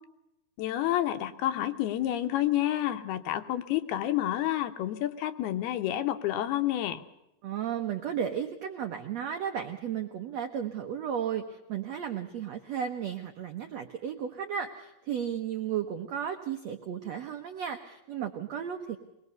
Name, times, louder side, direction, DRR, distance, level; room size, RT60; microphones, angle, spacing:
voice 1, 0.6-7.0, left 13 dB, 80° left, 9 dB, 2.9 m, -29 dB
voice 2, 7.4-19.0, right 8 dB, 75° right, 5 dB, 1.5 m, -34 dB
23.0 x 19.5 x 6.9 m, 0.90 s
omnidirectional pair, 4.6 m